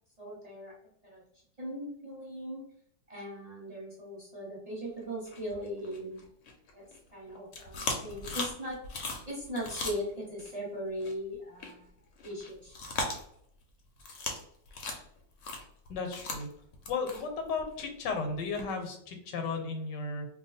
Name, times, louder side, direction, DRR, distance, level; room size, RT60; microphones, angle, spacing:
voice 1, 0.2-0.7 1.0-1.2 1.6-2.6 3.1-6.2 6.7-6.8 7.1-8.8 9.3-11.9 12.2-12.7 17.1-17.2, equal, 25° right, -6 dB, 1.0 m, -39 dB
sound 1, 5.2-7.0 7.3-10.5 11.0-11.1 11.6-11.7 12.0-13.6 14.0-14.4 14.7-18.7, left 3 dB, 60° left, 0.8 m, -38 dB
voice 2, 15.9-16.5 16.9-20.3, left 4 dB, 85° left, 5 dB, 1.3 m, -34 dB
2.7 x 2.3 x 4.0 m, 0.68 s
omnidirectional pair, 1.9 m